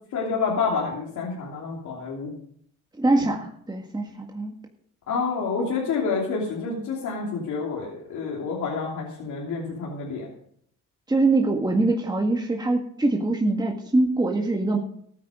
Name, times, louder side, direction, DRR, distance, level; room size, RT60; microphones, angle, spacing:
voice 1, 0.1-2.3 5.1-10.3, left 5 dB, 75° left, -4 dB, 3.1 m, -28 dB
voice 2, 3.0-4.5 11.1-14.8, right 2 dB, 15° right, 1 dB, 1.8 m, -23 dB
14.5 x 9.1 x 5.1 m, 0.66 s
cardioid pair, 90°, 30 cm